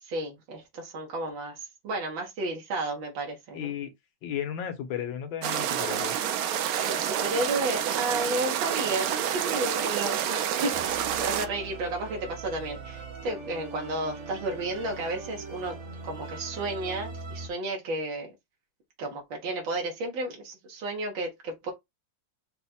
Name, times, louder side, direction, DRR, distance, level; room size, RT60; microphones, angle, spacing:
voice 1, 0.0-1.6 1.8-3.7 6.9-15.8 16.1-18.3 19.0-21.7, right 2 dB, 90° right, 1.9 m, -32 dB
voice 2, 3.5-3.9 4.2-6.2, left 9 dB, 85° left, 1.8 m, -34 dB
sound 1, 5.4-11.5, right 9 dB, 70° right, 0.9 m, -28 dB
sound 2, 10.7-17.5, right 4 dB, 45° right, 1.3 m, -41 dB
5.1 x 2.3 x 4.2 m
omnidirectional pair, 2.1 m